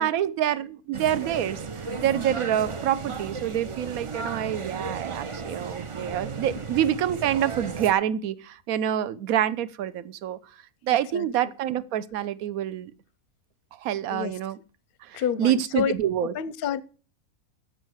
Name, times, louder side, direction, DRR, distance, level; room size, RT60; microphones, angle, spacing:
voice 1, 0.0-10.4 10.8-12.9 13.8-14.6 15.1-16.3, right 11 dB, 75° right, 1.1 m, -27 dB
sound 1, 0.9-7.9, right 4 dB, 55° right, 0.3 m, -35 dB
voice 2, 10.9-11.3 14.1-14.4 15.1-15.9 16.3-16.8, left 8 dB, 55° left, 0.6 m, -29 dB
7.7 x 6.4 x 7.9 m
omnidirectional pair, 1.5 m